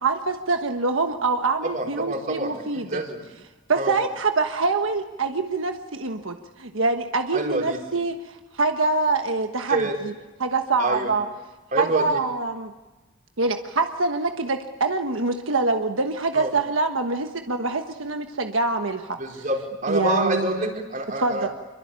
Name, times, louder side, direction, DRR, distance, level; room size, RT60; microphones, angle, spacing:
voice 1, 0.0-3.0 3.7-10.1 10.4-11.3 11.8-12.7 13.4-19.2 19.9-20.6 21.2-21.5, right 3 dB, 90° right, 6 dB, 1.3 m, -25 dB
voice 2, 1.6-3.2 3.8-3.9 7.3-7.8 9.7-10.0 10.8-11.1 11.7-12.2 16.3-16.5 19.2-21.5, right 2 dB, 40° right, 2 dB, 4.5 m, -27 dB
27.0 x 24.0 x 8.9 m, 1.2 s
head